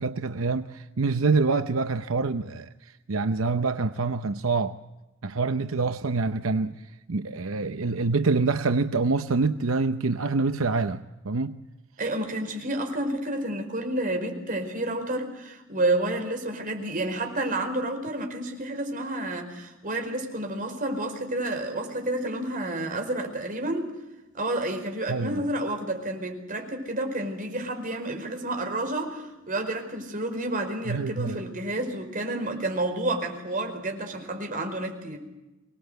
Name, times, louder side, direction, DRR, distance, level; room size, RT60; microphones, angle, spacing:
voice 1, 0.0-4.8 5.2-6.8 7.1-11.6 25.1-25.4 30.9-31.4, right 4 dB, 80° right, 0.7 m, -26 dB
voice 2, 12.0-23.9 24.3-35.2, right 1 dB, 40° right, 4.9 m, -30 dB
25.0 x 19.5 x 8.0 m
head